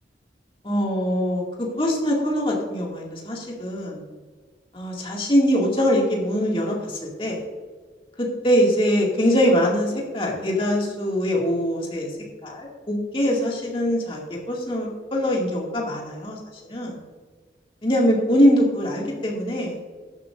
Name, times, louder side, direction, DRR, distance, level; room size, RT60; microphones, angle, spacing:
voice 1, 0.6-4.0 4.7-7.4 8.2-12.1 12.4-17.0 17.8-19.8, equal, 30° left, -2 dB, 2.2 m, -23 dB
13.5 x 10.5 x 2.6 m, 1.5 s
head